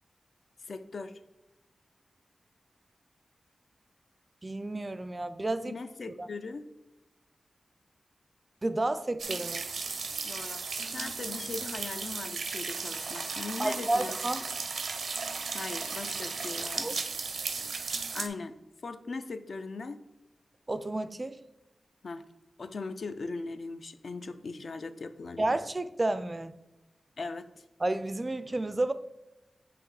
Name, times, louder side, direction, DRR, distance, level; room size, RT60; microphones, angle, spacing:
voice 1, 0.7-1.2 5.7-6.7 10.2-14.2 15.5-17.0 18.1-18.6 18.8-20.0 22.0-22.2 22.6-25.6 27.2-27.6, left 3 dB, 60° left, 10 dB, 0.4 m, -39 dB
voice 2, 4.4-5.7 6.2-6.3 8.6-9.6 13.6-14.4 16.7-16.9 20.7-21.4 25.4-26.5 27.8-28.9, right 2 dB, 25° right, 12 dB, 0.3 m, -31 dB
sound 1, 9.2-18.3, right 4 dB, 85° right, 0.5 m, -35 dB
7.8 x 2.9 x 4.7 m, 1.0 s
wide cardioid pair, 125°, 0 cm